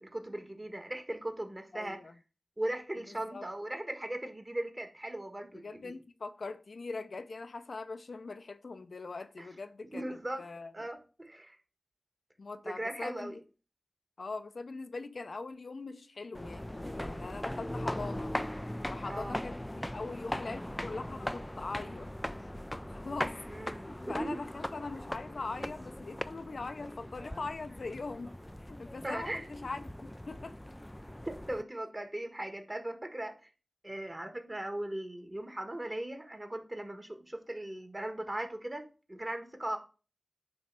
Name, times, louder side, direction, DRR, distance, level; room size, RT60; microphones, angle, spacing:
voice 1, 0.0-2.0 2.6-6.0 9.4-9.5 9.9-10.4 10.7-11.6 12.6-13.4 19.0-19.4 23.5-24.4 29.0-29.5 31.5-33.3 33.8-39.8, right 1 dB, 25° right, 1.6 m, -38 dB
voice 2, 1.7-2.1 3.1-3.5 5.5-10.9 12.4-13.4 14.2-18.4 18.9-22.1 22.9-30.6, left 3 dB, 70° left, 0.6 m, -42 dB
sound 1, 16.3-31.6, left 1 dB, 10° left, 0.3 m, -40 dB
9.4 x 3.2 x 6.1 m
wide cardioid pair, 55°, 0 cm